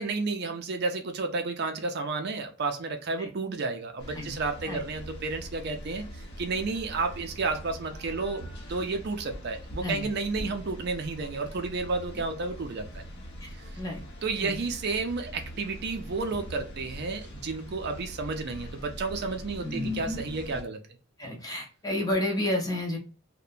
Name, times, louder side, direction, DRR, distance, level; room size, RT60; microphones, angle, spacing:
voice 1, 0.0-8.4 8.7-13.0 13.6-13.8 14.2-20.8, right 3 dB, 50° right, 6 dB, 0.4 m, -31 dB
sound 1, 4.0-20.6, equal, 50° left, 0.8 m, -43 dB
voice 2, 19.6-20.2 21.2-23.0, left 1 dB, 15° left, 1 dB, 0.6 m, -31 dB
2.7 x 2.1 x 2.4 m, 0.35 s
head